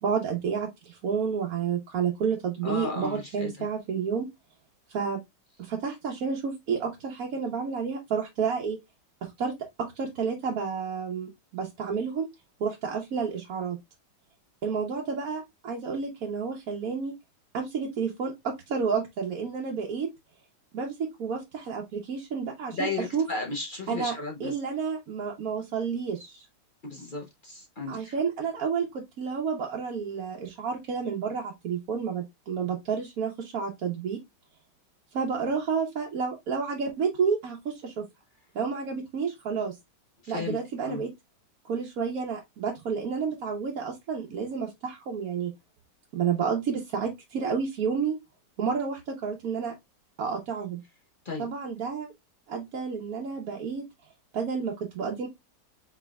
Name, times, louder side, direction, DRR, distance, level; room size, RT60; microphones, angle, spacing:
voice 1, 0.0-4.3 4.9-5.2 5.6-8.8 9.2-9.5 9.8-12.2 12.6-13.8 14.6-17.1 17.5-20.1 20.7-22.9 23.1-23.2 23.9-24.1 24.4-26.4 27.9-34.2 35.1-38.1 38.5-39.8 40.3-41.1 41.6-45.5 46.1-48.2 48.6-49.7 50.2-50.8 51.4-52.1 52.5-53.8 54.3-55.3, right 6 dB, 60° right, 1.2 m, -30 dB
voice 2, 2.6-3.7 22.7-24.6 26.8-28.2 40.2-41.1 51.2-51.5, left 3 dB, 45° left, 0.6 m, -34 dB
4.6 x 4.3 x 2.2 m
omnidirectional pair, 1.9 m